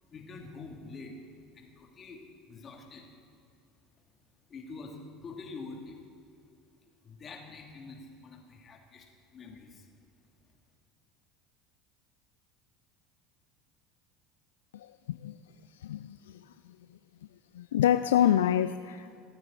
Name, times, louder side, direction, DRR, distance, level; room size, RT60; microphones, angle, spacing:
voice 1, 0.1-1.1 1.5-2.2 2.5-3.0 4.5-6.0 7.0-9.1 9.3-9.9, left 4 dB, 35° left, 1 dB, 2.8 m, -46 dB
voice 2, 14.7-15.3 15.8-16.2 17.6-19.2, left 11 dB, 75° left, 12 dB, 0.3 m, -26 dB
26.0 x 9.4 x 4.1 m, 2.5 s
hypercardioid pair, 70°, 0 cm